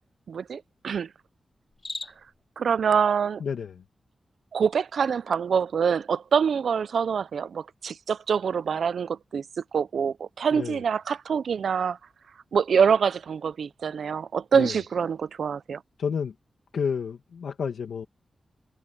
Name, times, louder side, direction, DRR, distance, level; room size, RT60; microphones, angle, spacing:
voice 1, 0.3-1.1 2.6-3.4 4.5-9.4 9.7-12.0 12.5-15.8, right 6 dB, 75° right, 0.5 m, -25 dB
Cricket, 1.6-2.4, left 3 dB, 30° left, 1.0 m, -38 dB
voice 2, 3.4-3.7 10.5-10.8 14.5-14.7 16.0-16.3 16.7-18.1, left 6 dB, 85° left, 1.7 m, -30 dB
wide cardioid pair, 160°, 0 cm